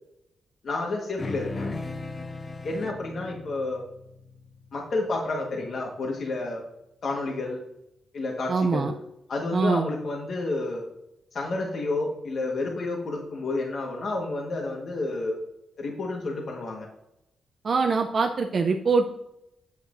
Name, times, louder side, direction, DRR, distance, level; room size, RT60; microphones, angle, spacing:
voice 1, 0.6-1.7 2.6-3.8 4.7-6.6 7.0-7.6 8.1-8.9 9.3-10.9 11.3-15.4 15.8-16.9, left 2 dB, 55° left, 0 dB, 1.3 m, -30 dB
sound 1, 1.2-5.9, left 3 dB, 20° left, 0.5 m, -38 dB
voice 2, 8.5-8.9 9.5-9.9 17.6-19.1, right 4 dB, 45° right, 4 dB, 0.5 m, -23 dB
8.2 x 7.9 x 2.6 m, 0.84 s
wide cardioid pair, 130°, 0 cm